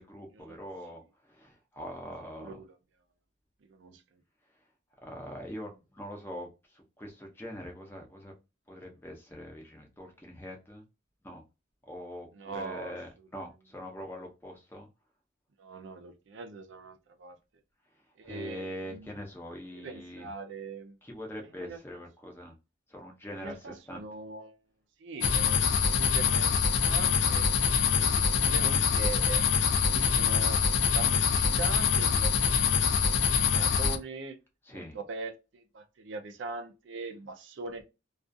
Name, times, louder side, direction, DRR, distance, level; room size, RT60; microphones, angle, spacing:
voice 1, 0.0-2.6 5.0-8.3 8.7-10.8 11.2-11.4 11.9-14.9 18.2-20.3 21.0-22.5 22.9-24.0 34.7-35.0, equal, 10° left, 0.5 m, -43 dB
voice 2, 2.4-2.8 3.6-4.2 12.3-13.3 15.6-17.4 18.2-19.1 19.7-21.0 21.6-21.8 23.3-24.6 25.0-27.5 27.9-29.5 29.8-32.9 33.5-34.4 34.7-37.8, right 3 dB, 75° right, 0.4 m, -42 dB
sound 1, 25.2-34.0, left 6 dB, 70° left, 0.4 m, -25 dB
2.4 x 2.4 x 2.5 m
head